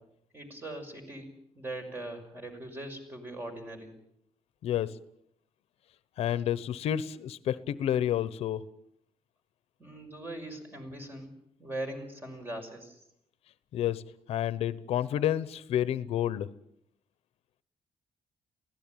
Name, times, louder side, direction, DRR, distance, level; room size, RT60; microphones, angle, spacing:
voice 1, 0.3-3.9 9.8-11.3 11.6-13.0, right 1 dB, 20° right, 4 dB, 5.9 m, -41 dB
voice 2, 4.6-5.0 6.2-8.6 13.7-14.0 14.3-16.5, left 11 dB, 85° left, 16 dB, 1.0 m, -29 dB
23.5 x 16.5 x 9.0 m, 0.72 s
cardioid pair, 130°, 10 cm